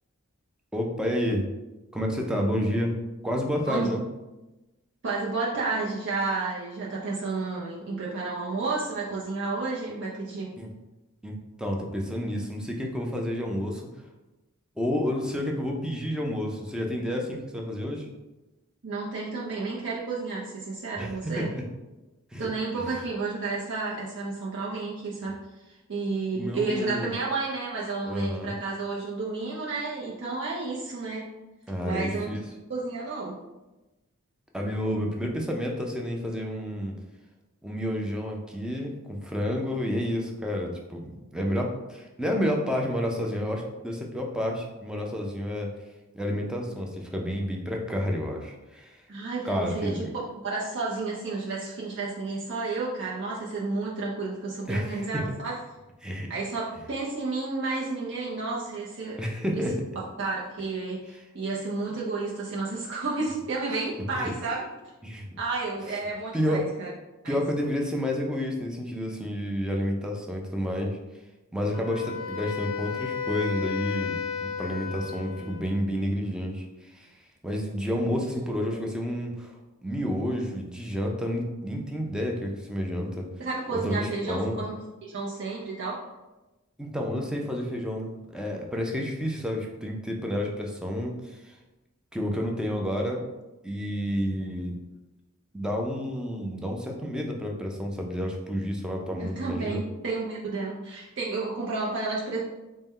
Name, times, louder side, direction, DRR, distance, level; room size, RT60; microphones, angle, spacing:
voice 1, 0.7-1.5 1.9-2.9 3.2-4.0 10.6-10.7 11.2-13.9 14.8-18.1 21.0-21.6 22.3-22.5 22.8-22.9 26.3-27.1 28.1-28.5 31.7-32.4 34.5-37.0 37.6-45.7 46.1-49.0 49.4-50.1 54.7-55.2 56.0-56.3 59.2-59.7 64.1-64.3 65.0-65.4 66.3-66.7 67.3-71.0 71.5-77.1 77.4-79.5 79.8-83.3 83.7-84.6 86.8-91.6 92.1-93.2 93.6-94.8 95.5-99.8, equal, 5° right, 0 dB, 0.4 m, -30 dB
voice 2, 5.0-10.5 18.8-21.5 22.4-31.3 31.8-32.3 32.7-33.4 49.1-50.1 50.4-55.6 56.3-59.2 59.5-59.7 60.2-64.6 65.4-66.9 67.2-67.4 78.5-78.8 83.4-84.7 85.0-86.0 99.2-102.4, right 3 dB, 55° right, -6 dB, 0.6 m, -31 dB
Wind instrument woodwind instrument, 71.7-75.8, left 6 dB, 65° left, 0.5 m, -33 dB
4.1 x 2.1 x 3.6 m, 1.1 s
head